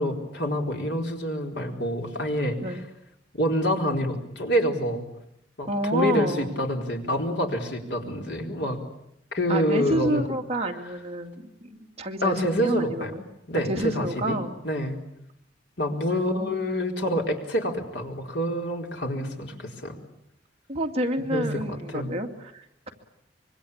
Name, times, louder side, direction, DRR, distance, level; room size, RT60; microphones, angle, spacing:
voice 1, 0.0-2.8 3.3-5.0 5.6-8.8 9.3-10.3 12.2-13.1 13.5-14.4 14.6-15.0 15.8-20.0 21.3-22.1, equal, 70° left, 2 dB, 4.5 m, -27 dB
voice 2, 5.7-6.5 9.5-13.2 13.7-14.5 16.2-16.7 20.7-22.9, right 1 dB, 35° right, 3 dB, 2.4 m, -29 dB
25.5 x 23.5 x 8.8 m, 0.79 s
head